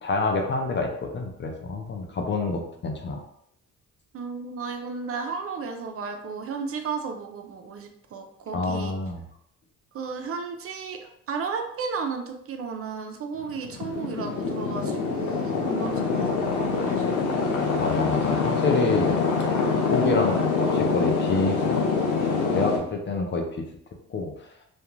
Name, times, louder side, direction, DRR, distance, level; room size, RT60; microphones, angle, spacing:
voice 1, 0.0-3.2 8.5-9.2 17.8-19.2 19.7-21.8 22.5-23.7 24.1-24.5, left 3 dB, 40° left, 3 dB, 0.5 m, -27 dB
voice 2, 4.1-8.9 9.9-17.3 20.0-20.3, right 5 dB, 50° right, 5 dB, 0.4 m, -34 dB
sound 1, 13.4-22.8, left 4 dB, 80° left, 0.7 m, -25 dB
2.4 x 2.2 x 3.0 m, 0.71 s
cardioid pair, 90°, 30 cm